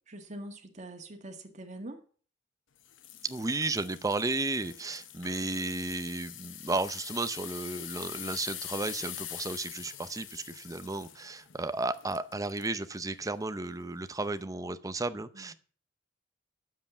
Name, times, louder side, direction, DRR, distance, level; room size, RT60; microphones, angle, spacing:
voice 1, 0.1-2.0 15.3-15.5, right 1 dB, 40° right, 1.7 m, -44 dB
sound 1, 2.8-12.7 13.3-13.5 14.0-14.1, left 11 dB, 80° left, 0.9 m, -44 dB
voice 2, 3.2-15.5, right 2 dB, 20° right, 0.7 m, -33 dB
9.6 x 7.7 x 7.1 m
head